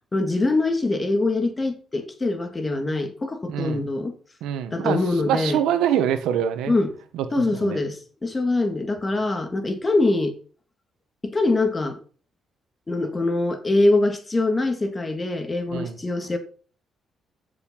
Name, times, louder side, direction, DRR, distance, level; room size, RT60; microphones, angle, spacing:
voice 1, 0.1-4.1 4.7-5.6 6.7-6.9 7.3-10.3 11.2-12.0 12.9-16.4, left 2 dB, 25° left, 3.1 m, -23 dB
voice 2, 3.5-3.9 4.4-6.7 7.1-7.8 15.7-16.0, right 9 dB, 90° right, 1.6 m, -25 dB
15.5 x 7.1 x 5.9 m
cardioid pair, 90°, 0 cm